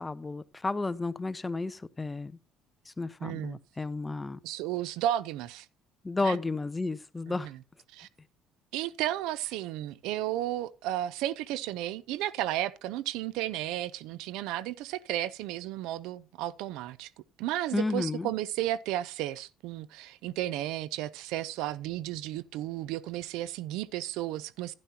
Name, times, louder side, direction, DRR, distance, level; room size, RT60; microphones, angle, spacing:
voice 1, 0.0-2.3 3.0-4.4 6.0-7.5 17.7-18.3, left 3 dB, 15° left, 0.5 m, -32 dB
voice 2, 3.2-3.6 4.4-5.7 6.2-6.4 7.3-7.6 7.9-8.1 8.7-17.1 17.4-24.7, right 13 dB, 85° right, 0.6 m, -33 dB
11.5 x 11.0 x 2.9 m
cardioid pair, 110°, 0 cm